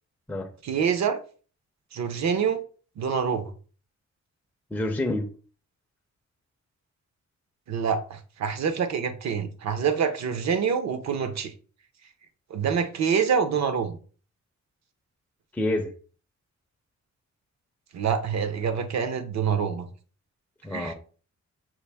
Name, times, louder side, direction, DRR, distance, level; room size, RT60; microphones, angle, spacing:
voice 1, 0.6-1.2 1.9-2.6 3.0-3.5 7.7-11.5 12.5-14.0 17.9-19.9 20.7-20.9, right 6 dB, 65° right, 0.7 m, -26 dB
voice 2, 4.7-5.3 15.5-15.9 20.6-20.9, left 1 dB, 5° left, 0.4 m, -27 dB
5.8 x 2.5 x 3.3 m
wide cardioid pair, 155°, 29 cm